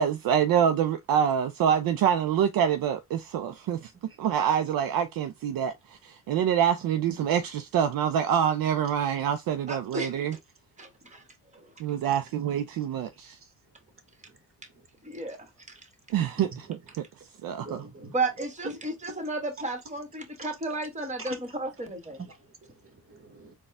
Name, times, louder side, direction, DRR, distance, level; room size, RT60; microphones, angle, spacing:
voice 1, 0.0-3.9 4.2-10.4 11.8-13.4 16.1-16.5 17.4-17.8, right 8 dB, 60° right, 0.6 m, -26 dB
voice 2, 9.7-10.1 10.8-11.2 15.0-15.5 18.1-22.2, right 2 dB, 20° right, 1.4 m, -33 dB
voice 3, 13.1-13.5 14.3-14.4 14.7-15.4 16.4-16.7 17.5-18.9 20.4-20.5 21.2-21.7 22.0-23.5, right 3 dB, 35° right, 1.2 m, -45 dB
4.1 x 2.3 x 3.3 m
cardioid pair, 85°, 40 cm